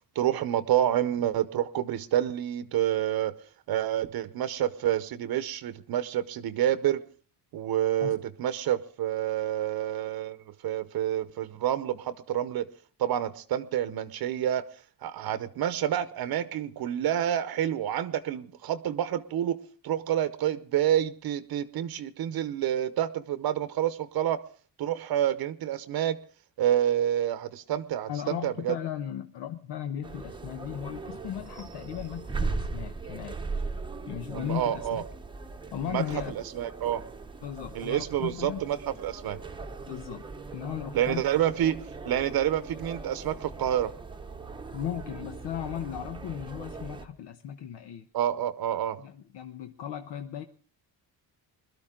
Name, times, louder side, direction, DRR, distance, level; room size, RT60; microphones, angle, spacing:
voice 1, 0.2-3.3 3.7-7.0 7.5-10.4 10.6-12.7 13.0-14.7 15.0-24.4 24.8-26.2 26.6-28.7 34.3-35.0 35.9-36.2 36.5-37.0 37.7-39.4 40.9-43.9 48.1-49.0, right 11 dB, 65° right, 0.8 m, -28 dB
voice 2, 28.1-33.3 34.1-35.0 35.7-36.4 37.4-38.6 39.9-41.2 44.7-48.1 49.0-50.4, left 10 dB, 85° left, 1.0 m, -36 dB
sound 1, 30.0-47.1, right 3 dB, 10° right, 0.8 m, -39 dB
21.5 x 12.5 x 3.7 m
cardioid pair, 145°, 40 cm